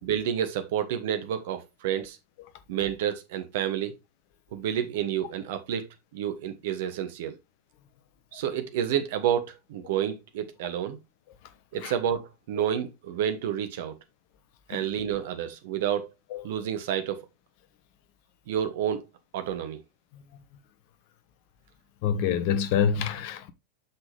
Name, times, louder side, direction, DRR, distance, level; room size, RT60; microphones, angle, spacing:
voice 1, 0.0-2.2 2.7-3.9 4.5-5.9 6.1-7.4 8.3-11.0 11.7-13.9 14.7-16.1 16.4-17.2 18.5-19.0 19.3-19.8, right 9 dB, 55° right, 1.3 m, -29 dB
voice 2, 22.0-23.5, left 8 dB, 45° left, 1.1 m, -26 dB
8.3 x 6.1 x 3.4 m
figure-of-eight pair, 90°, 0 cm